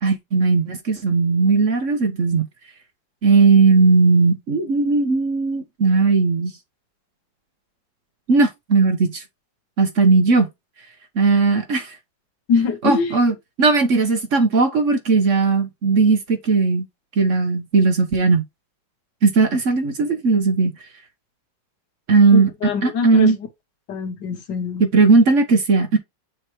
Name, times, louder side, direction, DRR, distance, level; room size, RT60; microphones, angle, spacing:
voice 1, 0.0-2.5 3.2-6.5 8.3-9.2 9.8-10.5 11.2-12.0 12.8-16.8 17.2-18.4 19.2-20.8 22.1-22.5 22.8-23.4 24.8-26.0, right 4 dB, 50° right, 1.1 m, -17 dB
voice 2, 12.5-13.1 22.3-23.3 23.9-24.8, left 6 dB, 75° left, 1.9 m, -23 dB
6.6 x 3.2 x 4.5 m
omnidirectional pair, 1.9 m